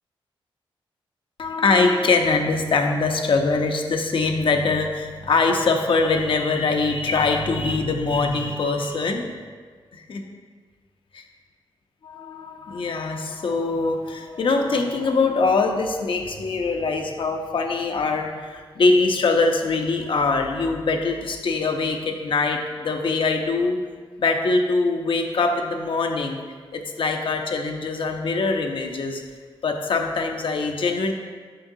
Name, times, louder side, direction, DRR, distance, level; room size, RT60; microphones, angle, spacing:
voice 1, 1.4-9.2 9.9-10.2 11.1-11.2 12.0-23.8 24.2-26.4 26.7-29.2 29.6-31.1, left 3 dB, 60° left, 4 dB, 0.7 m, -23 dB
7.6 x 5.8 x 2.7 m, 1.5 s
cardioid pair, 80°, 10 cm